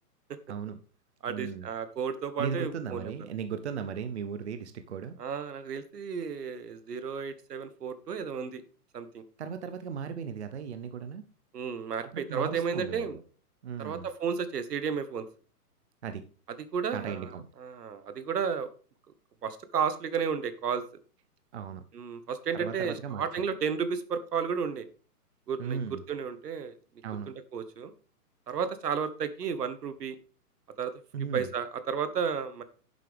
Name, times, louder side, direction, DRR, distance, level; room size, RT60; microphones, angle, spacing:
voice 1, 0.5-0.8 1.3-1.7 2.4-5.2 9.4-11.2 12.1-13.2 13.6-14.1 16.0-16.2 16.9-17.4 21.5-21.8 22.5-23.2 25.6-26.0 27.0-27.3 31.1-31.5, right 7 dB, 45° right, 9 dB, 0.8 m, -36 dB
voice 2, 1.2-3.1 5.2-8.6 8.9-9.2 11.5-13.2 13.8-15.3 16.7-18.7 19.4-20.8 21.9-24.9 25.5-26.7 27.3-27.9 28.5-30.2 30.8-30.9 31.3-32.6, right 6 dB, 80° right, 12 dB, 1.6 m, -33 dB
10.5 x 7.8 x 3.5 m, 0.39 s
hypercardioid pair, 165°, 47 cm